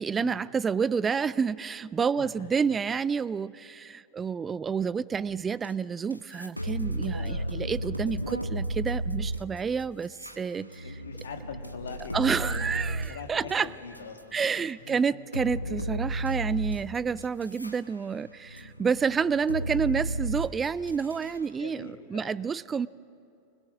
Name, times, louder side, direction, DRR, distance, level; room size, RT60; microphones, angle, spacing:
voice 1, 0.0-10.9 12.1-13.7 14.3-22.9, right 6 dB, 20° right, 20 dB, 0.4 m, -29 dB
voice 2, 2.1-2.5 7.2-7.5 10.8-14.5 14.8-15.0 21.6-22.5, left 6 dB, 65° left, 4 dB, 2.1 m, -43 dB
sound 1, 5.6-5.7 6.1-14.4 14.9-15.0 15.3-17.7 18.1-21.4, right 1 dB, 90° left, 1.1 m, -33 dB
25.0 x 21.5 x 6.4 m, 2.6 s
figure-of-eight pair, 90°, 0 cm